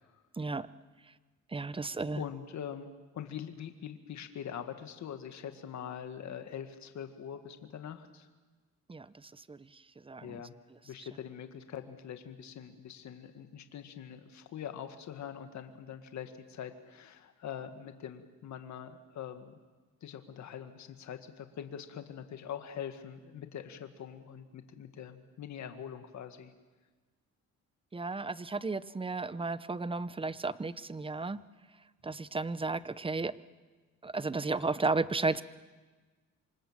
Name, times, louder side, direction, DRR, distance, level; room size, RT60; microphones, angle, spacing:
voice 1, 0.4-0.7 1.5-2.2 8.9-9.1 9.5-9.6 10.1-10.4 27.9-31.4 32.0-33.3 34.0-35.4, right 3 dB, 20° right, 16 dB, 0.9 m, -33 dB
voice 2, 1.6-2.9 3.1-8.3 10.2-10.5 10.8-19.6 20.0-26.5, left 9 dB, 65° left, 7 dB, 1.9 m, -43 dB
27.0 x 25.0 x 7.5 m, 1.3 s
cardioid pair, 90°, 30 cm